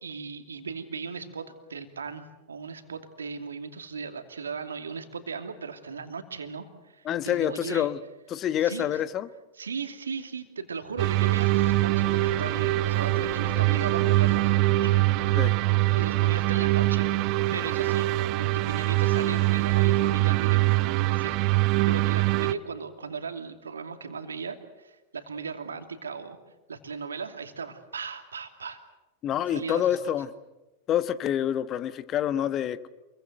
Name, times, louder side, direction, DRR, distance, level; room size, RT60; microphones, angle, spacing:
voice 1, 0.0-7.9 8.6-9.0 9.6-14.5 14.8-14.9 15.9-21.4 21.7-26.4 26.7-28.8 29.5-30.0, right 5 dB, 80° right, 7 dB, 2.6 m, -37 dB
voice 2, 7.0-8.0 8.3-9.3 15.4-15.5 29.2-30.3 30.9-32.9, left 10 dB, 35° left, 14 dB, 1.3 m, -27 dB
sound 1, 10.9-22.3, left 2 dB, 80° left, 6.6 m, -44 dB
sound 2, 11.0-22.5, right 19 dB, 45° right, 0.9 m, -23 dB
28.0 x 23.0 x 7.9 m, 1.0 s
figure-of-eight pair, 90°, 0 cm